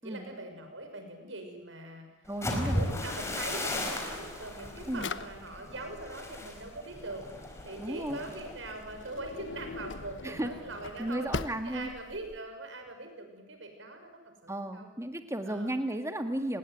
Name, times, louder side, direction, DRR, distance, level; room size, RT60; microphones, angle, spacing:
voice 1, 0.0-2.1 2.5-7.2 7.6-11.3 11.6-14.9 15.5-15.7, right 2 dB, 80° right, 5 dB, 6.1 m, -42 dB
sound 1, 2.3-10.1 10.5-10.8 11.2-11.6, left 1 dB, 15° left, 4.3 m, -37 dB
voice 2, 2.3-2.8 4.9-5.1 7.8-8.2 10.2-10.5 11.0-11.9 14.5-16.6, right 1 dB, 15° right, 7 dB, 1.9 m, -34 dB
Drawer open or close, 2.5-12.4, left 4 dB, 70° left, 1.0 m, -43 dB
29.0 x 20.0 x 9.4 m, 1.0 s
head